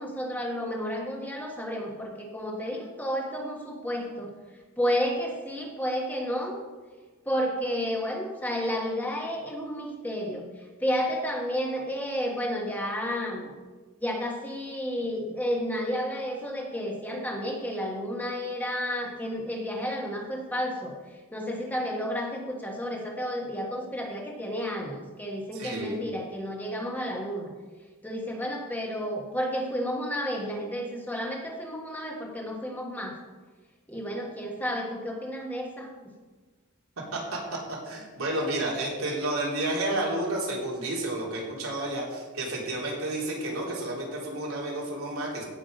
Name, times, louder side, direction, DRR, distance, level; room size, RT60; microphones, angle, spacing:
voice 1, 0.0-4.3 4.8-6.5 7.2-10.4 10.8-13.5 14.0-20.9 21.3-27.5 28.0-33.1 33.9-35.9, equal, 10° left, 0 dB, 1.4 m, -31 dB
voice 2, 25.5-26.0 37.1-37.4 37.8-45.4, right 1 dB, 90° right, -3 dB, 3.5 m, -31 dB
16.0 x 6.0 x 5.2 m, 1.3 s
head